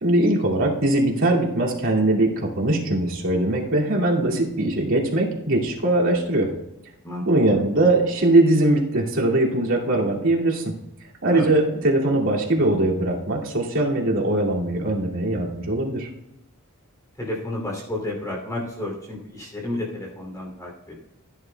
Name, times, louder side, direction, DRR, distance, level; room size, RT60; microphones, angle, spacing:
voice 1, 0.0-6.5 7.3-10.7 11.2-16.1, right 2 dB, 65° right, -3 dB, 2.5 m, -21 dB
voice 2, 7.0-7.7 11.3-11.5 17.2-21.0, left 1 dB, 15° left, -3 dB, 2.9 m, -31 dB
16.0 x 9.8 x 2.3 m, 0.87 s
head